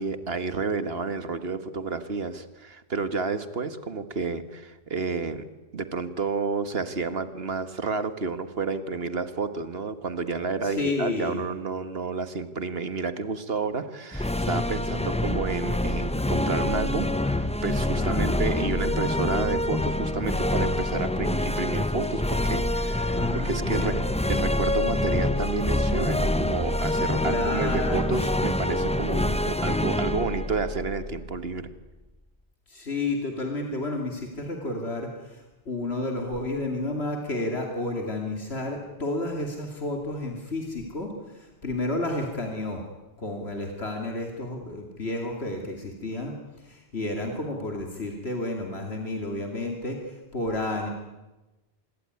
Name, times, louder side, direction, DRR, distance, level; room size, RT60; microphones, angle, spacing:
voice 1, 0.0-5.4 5.7-24.0 24.3-31.7, right 4 dB, 65° right, 11 dB, 1.8 m, -30 dB
voice 2, 10.6-11.4 17.9-18.3 23.1-24.0 27.2-28.1 32.7-42.8 43.2-50.9, left 2 dB, 75° left, 2 dB, 3.0 m, -31 dB
sound 1, 14.1-31.6, left 1 dB, 5° left, 0.8 m, -26 dB
26.5 x 21.0 x 9.7 m, 1.1 s
omnidirectional pair, 1.1 m